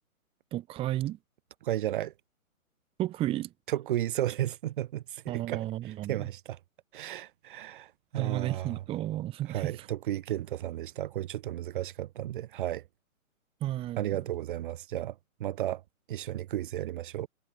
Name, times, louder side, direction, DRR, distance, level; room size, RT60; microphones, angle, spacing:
voice 1, 0.5-1.2 3.0-3.5 5.3-6.3 8.2-9.9 13.6-14.2, right 14 dB, 15° right, 1.7 m, -33 dB
voice 2, 1.6-2.1 3.7-6.6 6.9-8.8 9.4-12.8 14.0-15.8 16.1-17.3, right 13 dB, 35° right, 2.1 m, -34 dB
hypercardioid pair, 155°, 42 cm